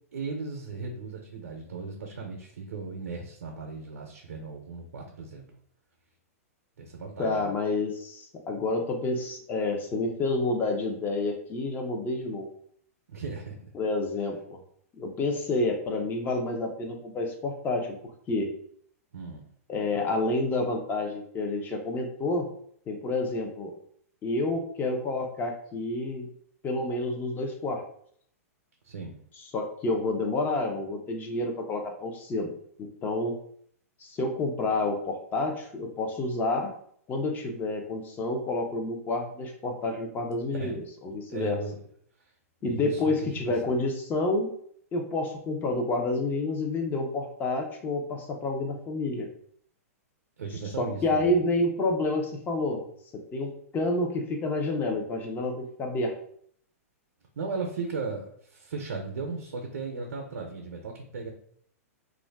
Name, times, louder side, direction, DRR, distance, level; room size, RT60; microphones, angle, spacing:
voice 1, 0.1-5.5 6.8-7.5 13.1-13.6 19.1-19.4 28.8-29.2 40.5-40.7 41.3-41.8 42.6-43.0 43.5-43.8 50.4-51.3 57.4-61.3, right 4 dB, 85° right, 1 dB, 0.6 m, -36 dB
voice 2, 7.2-12.5 13.7-14.6 14.9-18.0 18.3-18.5 19.7-22.5 22.9-23.7 24.2-26.3 26.6-27.8 29.5-32.5 32.8-33.4 34.0-36.7 37.1-41.6 42.6-44.5 44.9-49.3 50.8-52.8 53.1-56.1, left 2 dB, 20° left, 3 dB, 0.6 m, -29 dB
2.4 x 2.2 x 3.3 m, 0.63 s
hypercardioid pair, 130°, 8 cm